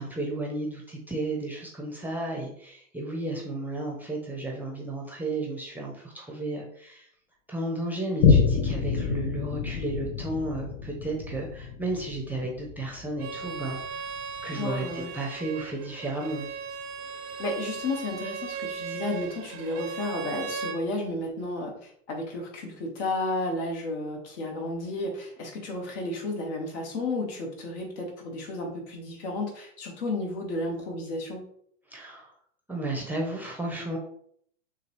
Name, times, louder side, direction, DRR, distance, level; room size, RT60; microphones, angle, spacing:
voice 1, 0.0-7.1 7.5-14.1 14.4-16.5 31.9-32.3 32.7-34.0, right 2 dB, 5° right, -1 dB, 0.8 m, -33 dB
Boom, 8.2-15.1 15.7-15.8, left 5 dB, 30° left, 0.5 m, -27 dB
Bowed string instrument, 13.2-20.8, right 6 dB, 40° right, 0.7 m, -37 dB
voice 2, 14.5-15.1 17.4-31.4, left 2 dB, 60° left, 0 dB, 1.8 m, -32 dB
6.5 x 2.4 x 3.2 m, 0.64 s
hypercardioid pair, 105°, 39 cm